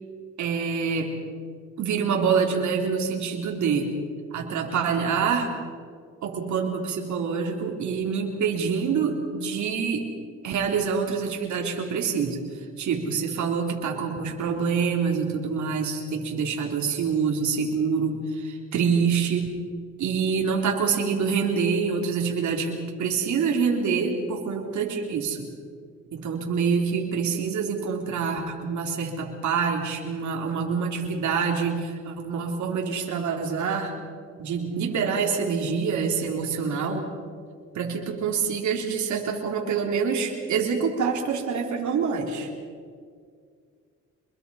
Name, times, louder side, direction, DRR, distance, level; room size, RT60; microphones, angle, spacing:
voice 1, 0.4-1.1 1.8-3.9 4.3-5.5 6.2-10.1 10.4-19.6 20.0-25.5 26.1-34.0 34.4-37.1 37.7-42.5, right 6 dB, 70° right, 1 dB, 3.6 m, -26 dB
26.0 x 22.0 x 5.6 m, 2.1 s
cardioid pair, 90°, 30 cm